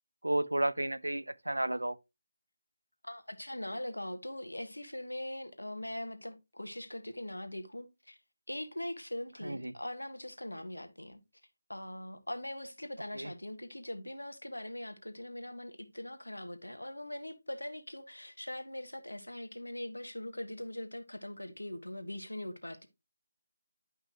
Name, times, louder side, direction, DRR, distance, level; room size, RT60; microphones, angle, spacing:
voice 1, 0.2-2.0 9.4-9.7 13.1-13.3, right 1 dB, 85° right, 0.5 m, -32 dB
voice 2, 3.0-8.2 8.5-11.2 11.7-22.9, left 1 dB, 85° left, 1.4 m, -41 dB
11.5 x 5.5 x 3.0 m
figure-of-eight pair, 155°, 0 cm